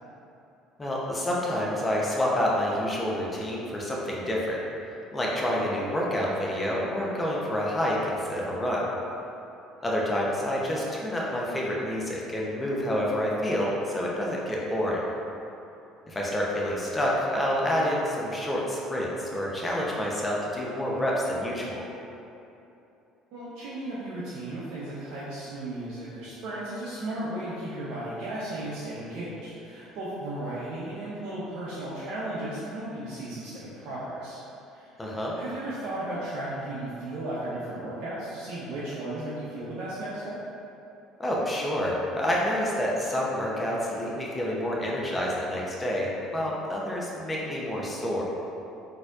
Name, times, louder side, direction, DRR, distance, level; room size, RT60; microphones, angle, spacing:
voice 1, 0.8-4.6 5.1-8.8 9.8-15.0 16.1-21.8 35.0-35.3 41.2-48.2, equal, 20° left, -4 dB, 0.8 m, -28 dB
voice 2, 23.3-34.4 34.7-34.9 35.3-40.4, right 1 dB, 60° right, -9 dB, 0.6 m, -35 dB
4.1 x 2.8 x 2.4 m, 2.8 s
hypercardioid pair, 60°, 0 cm